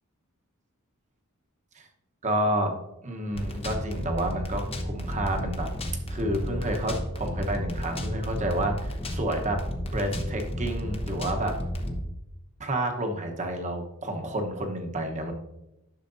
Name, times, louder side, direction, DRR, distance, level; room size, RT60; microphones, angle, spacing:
voice 1, 2.2-2.7 3.0-5.7 6.1-9.6 9.9-11.5 12.6-15.3, right 1 dB, 35° right, 3 dB, 1.1 m, -30 dB
sound 1, 3.3-12.0, equal, 25° left, 0.9 m, -32 dB
10.5 x 6.6 x 2.6 m, 0.91 s
head